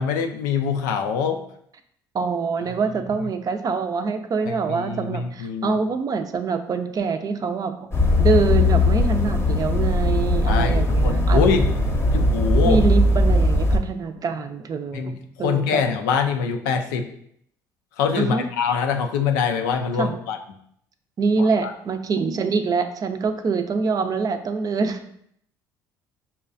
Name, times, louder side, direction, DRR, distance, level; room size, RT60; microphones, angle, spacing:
voice 1, 0.0-1.4 4.5-5.8 10.5-11.7 12.0-12.8 14.9-15.1 15.4-17.1 18.0-20.4 21.4-21.7, left 6 dB, 85° left, 5 dB, 0.4 m, -24 dB
voice 2, 2.1-7.9 8.2-11.4 12.6-15.1 15.4-15.8 18.2-18.5 20.0-20.2 21.2-25.0, right 4 dB, 40° right, 8 dB, 0.5 m, -24 dB
sound 1, 7.9-13.8, left 1 dB, 25° left, 0.8 m, -19 dB
5.5 x 2.2 x 2.5 m, 0.68 s
hypercardioid pair, 65°, 10 cm